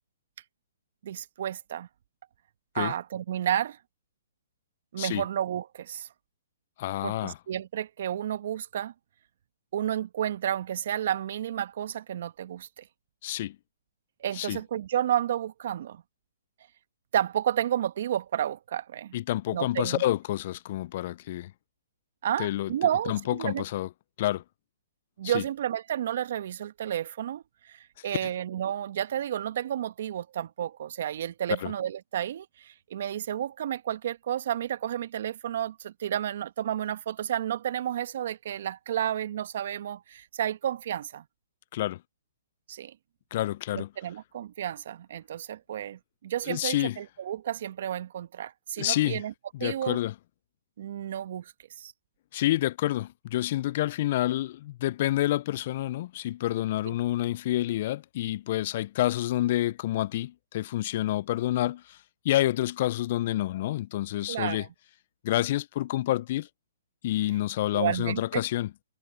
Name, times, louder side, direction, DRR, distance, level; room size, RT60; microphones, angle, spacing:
voice 1, 1.0-1.9 2.7-3.8 4.9-6.1 7.0-8.9 9.7-12.8 14.2-16.0 17.1-19.2 19.5-20.0 22.2-23.6 25.2-41.2 42.7-42.9 43.7-49.3 49.6-50.0 50.8-51.5 51.8-51.9 64.3-64.7 67.7-68.4, right 10 dB, 60° right, 1.0 m, -31 dB
voice 2, 6.8-7.4 13.2-13.6 14.3-14.6 19.1-21.5 22.4-22.7 23.1-23.9 24.2-24.4 25.2-25.4 28.2-28.3 31.6-31.7 41.7-42.0 43.3-43.9 46.5-47.0 48.8-49.2 49.5-50.1 52.3-62.0 62.2-64.6 65.2-66.5 67.0-68.7, left 14 dB, 50° left, 0.3 m, -28 dB
hypercardioid pair, 135°, 0 cm